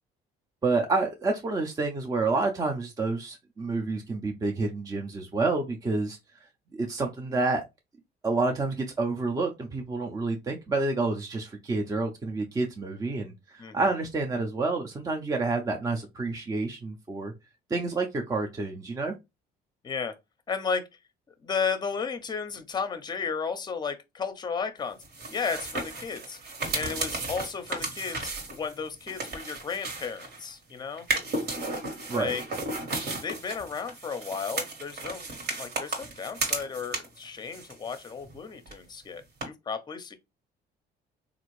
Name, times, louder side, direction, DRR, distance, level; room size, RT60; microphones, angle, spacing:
voice 1, 0.6-6.2 6.7-7.6 8.2-17.3 17.7-19.1 32.1-32.3, right 3 dB, 20° right, 0.5 m, -29 dB
voice 2, 13.6-13.9 19.8-20.2 20.5-20.9 21.4-25.0 25.3-26.4 26.7-31.1 32.1-32.4 33.2-35.3 35.6-40.2, left 5 dB, 25° left, 0.6 m, -34 dB
sound 1, 25.0-30.5 31.0-37.2 37.5-38.4 38.6-38.7 39.4-39.5, right 2 dB, 70° right, 1.4 m, -34 dB
3.5 x 2.5 x 3.1 m
cardioid pair, 110°, 17 cm